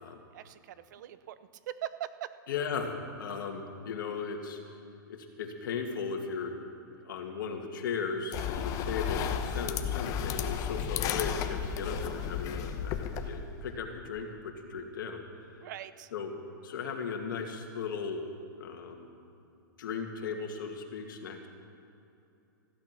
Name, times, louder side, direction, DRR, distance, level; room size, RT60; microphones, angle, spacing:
voice 1, 0.3-1.4 1.7-2.3 15.6-16.1, right 12 dB, 60° right, 14 dB, 0.7 m, -41 dB
voice 2, 2.5-4.6 5.1-6.5 7.0-15.2 16.1-16.3 16.6-18.2 18.6-19.1 19.8-21.5, left 5 dB, 70° left, 3 dB, 2.2 m, -36 dB
sound 1, 8.3-13.7, left 8 dB, 30° left, 0.9 m, -33 dB
15.0 x 12.0 x 6.1 m, 2.7 s
hypercardioid pair, 145°, 11 cm